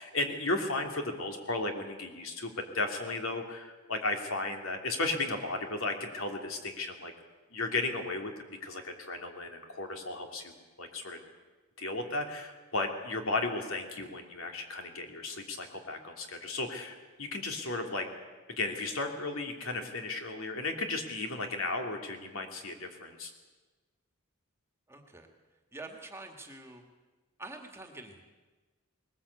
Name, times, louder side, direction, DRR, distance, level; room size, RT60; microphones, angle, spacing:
voice 1, 0.0-7.1 7.5-8.3 8.6-10.5 10.8-11.2 11.8-18.1 18.5-23.3, left 2 dB, 65° left, 4 dB, 3.0 m, -35 dB
voice 2, 24.9-25.3 25.7-26.8 27.4-28.3, right 2 dB, 10° right, 4 dB, 2.0 m, -46 dB
20.5 x 20.0 x 8.3 m, 1.3 s
head